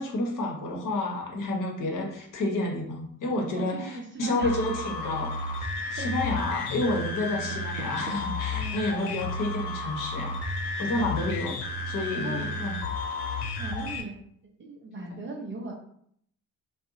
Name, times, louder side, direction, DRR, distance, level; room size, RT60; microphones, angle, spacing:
voice 1, 0.0-5.3 5.6-10.3 10.8-11.5 11.9-12.8, left 2 dB, 45° left, 0 dB, 0.8 m, -30 dB
voice 2, 3.5-4.6 6.0-6.1 6.5-6.7 8.5-8.8 10.8-11.2 12.2-12.5 13.6-14.2 14.4-15.7, right 2 dB, 25° right, 0 dB, 0.5 m, -39 dB
sound 1, 4.4-14.0, left 2 dB, 75° left, 0.5 m, -32 dB
Door, 7.2-8.5, right 4 dB, 85° right, 0.5 m, -43 dB
2.6 x 2.0 x 2.6 m, 0.67 s
hypercardioid pair, 55°, 44 cm